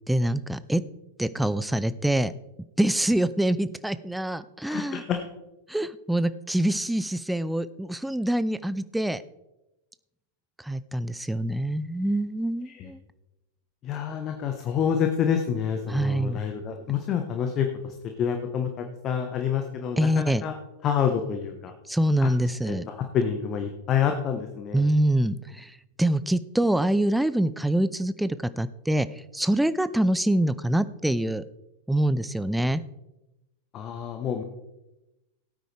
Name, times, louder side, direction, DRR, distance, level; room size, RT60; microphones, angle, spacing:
voice 1, 0.1-0.8 1.2-2.3 2.8-5.0 5.7-9.2 10.6-13.0 15.9-16.4 20.0-20.4 21.9-22.9 24.7-25.7 26.0-29.1 29.3-31.4 31.9-32.8, right 1 dB, 5° right, 15 dB, 0.5 m, -25 dB
voice 2, 4.6-5.2 12.7-12.9 13.8-20.5 20.8-21.7 22.2-22.3 22.6-24.9 33.7-34.4, left 8 dB, 30° left, 5 dB, 1.2 m, -28 dB
17.0 x 9.0 x 3.4 m, 0.96 s
figure-of-eight pair, 90°, 0 cm